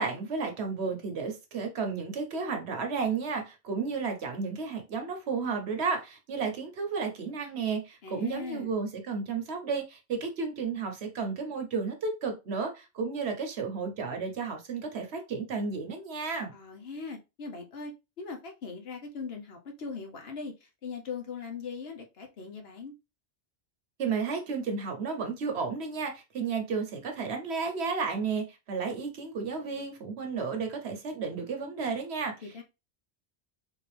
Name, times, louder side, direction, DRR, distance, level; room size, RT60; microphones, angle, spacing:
voice 1, 0.0-16.5 24.0-32.3, right 5 dB, 75° right, 1.2 m, -32 dB
voice 2, 8.0-8.8 16.5-17.9 18.2-20.5 20.8-22.9 32.4-32.6, left 5 dB, 65° left, 1.1 m, -40 dB
3.8 x 2.7 x 3.3 m
omnidirectional pair, 1.1 m